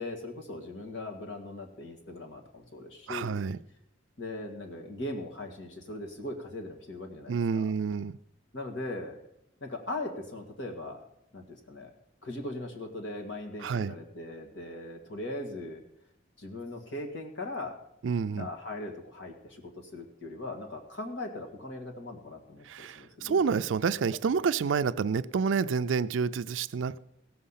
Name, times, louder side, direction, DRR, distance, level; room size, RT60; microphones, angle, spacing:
voice 1, 0.0-3.4 4.2-7.7 8.5-9.2 9.6-11.0 11.3-11.9 12.2-15.8 16.4-17.8 18.3-23.4, left 2 dB, 70° left, 1.9 m, -39 dB
voice 2, 3.1-3.6 7.3-8.2 13.6-13.9 18.0-18.5 22.6-27.0, right 5 dB, 80° right, 0.4 m, -29 dB
16.5 x 6.5 x 5.7 m
head